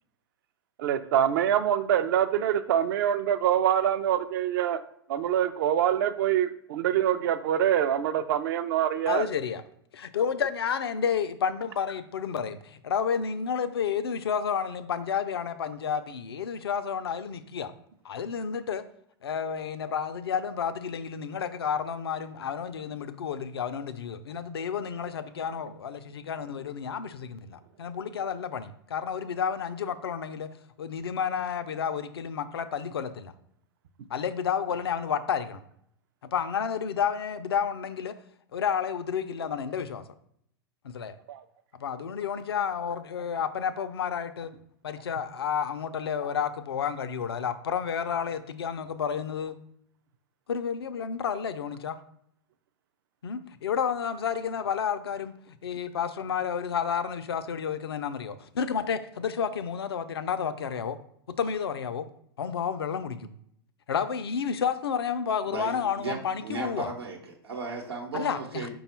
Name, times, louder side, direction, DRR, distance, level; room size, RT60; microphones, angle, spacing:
voice 1, 0.8-4.8 5.1-9.2 41.3-41.4, right 10 dB, 55° right, 0.4 m, -25 dB
voice 2, 9.1-9.6 9.9-17.7 18.0-18.8 19.2-30.5 30.8-33.3 34.1-35.6 36.3-38.1 38.5-40.0 40.8-41.2 41.8-44.5 44.8-49.6 50.5-52.0 53.2-55.3 55.6-61.0 61.4-62.1 62.4-63.3 63.9-66.9 68.1-68.7, left 7 dB, 75° left, 0.4 m, -31 dB
voice 3, 65.4-68.7, right 4 dB, 80° right, 0.9 m, -36 dB
5.2 x 2.3 x 4.2 m
figure-of-eight pair, 95°, 13 cm